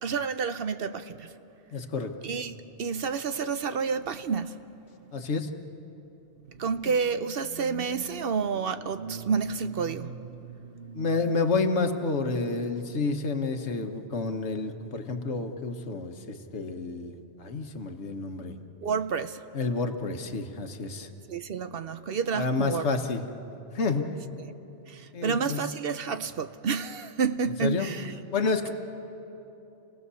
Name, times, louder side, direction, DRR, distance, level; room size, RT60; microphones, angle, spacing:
voice 1, 0.0-1.3 2.2-4.6 6.5-11.3 18.8-19.4 21.3-22.9 24.9-28.1, right 5 dB, 60° right, 0.8 m, -30 dB
voice 2, 1.7-2.1 5.1-5.5 10.9-18.6 19.5-21.1 22.3-23.2 23.7-24.1 25.1-25.6 27.6-27.9 28.3-28.7, left 4 dB, 75° left, 1.5 m, -29 dB
28.5 x 17.5 x 7.0 m
omnidirectional pair, 1.2 m